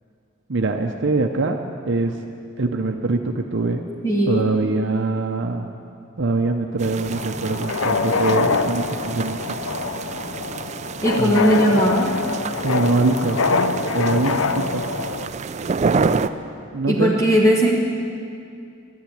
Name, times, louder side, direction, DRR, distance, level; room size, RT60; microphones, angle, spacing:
voice 1, 0.5-1.6 1.9-2.2 2.6-3.9 4.3-5.7 6.2-9.6 11.2-11.5 12.6-13.5 13.9-14.8 16.7-17.2, right 3 dB, 65° right, 3 dB, 0.7 m, -23 dB
voice 2, 4.0-4.5 11.0-12.1 16.9-17.7, equal, 15° left, -3 dB, 1.3 m, -18 dB
sound 1, 6.8-16.3, right 4 dB, 35° right, 0.4 m, -28 dB
sound 2, 7.1-15.3, left 4 dB, 80° left, 0.6 m, -24 dB
12.0 x 10.0 x 9.2 m, 2.4 s
head